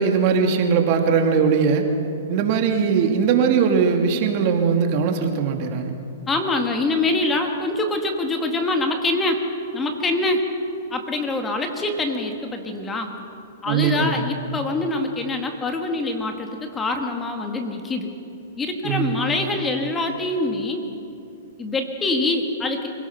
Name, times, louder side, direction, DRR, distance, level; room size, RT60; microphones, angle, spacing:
voice 1, 0.0-1.9 2.3-5.9 13.7-14.2 18.8-19.3, right 6 dB, 45° right, 4 dB, 2.3 m, -20 dB
voice 2, 6.3-9.4 9.7-10.5 10.9-13.1 13.6-18.1 18.6-20.8 21.6-22.9, left 2 dB, 15° left, 4 dB, 1.8 m, -24 dB
26.0 x 18.0 x 5.8 m, 2.7 s
hypercardioid pair, 130°, 0 cm